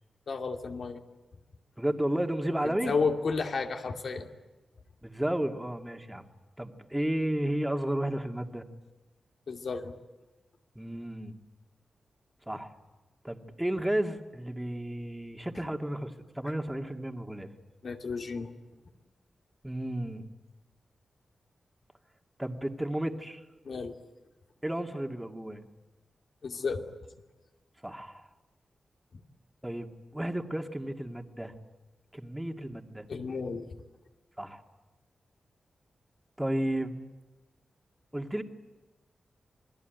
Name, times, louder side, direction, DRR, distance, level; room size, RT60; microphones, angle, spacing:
voice 1, 0.3-1.0 2.6-4.3 9.5-9.9 17.8-18.5 23.6-23.9 26.4-26.8 33.1-33.7, left 4 dB, 65° left, 4 dB, 2.6 m, -32 dB
voice 2, 1.8-2.9 5.0-6.2 6.6-8.6 10.8-11.3 12.5-12.7 13.2-17.5 19.6-20.2 22.4-23.4 24.6-25.6 27.8-28.3 29.6-31.6 32.1-33.1 34.4-34.6 36.4-37.0 38.1-38.4, right 1 dB, 10° right, 5 dB, 2.3 m, -32 dB
28.5 x 21.0 x 9.4 m, 1.1 s
cardioid pair, 80°, 0 cm